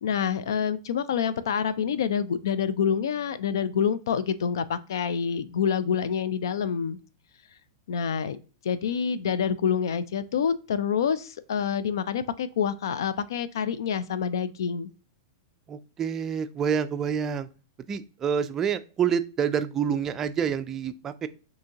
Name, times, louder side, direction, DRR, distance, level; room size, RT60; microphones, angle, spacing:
voice 1, 0.0-7.0 7.9-8.4 8.6-14.9, left 7 dB, 85° left, 0.4 m, -27 dB
voice 2, 15.7-17.5 17.9-21.3, right 7 dB, 20° right, 0.3 m, -27 dB
6.0 x 2.8 x 2.8 m
supercardioid pair, 155°, 2 cm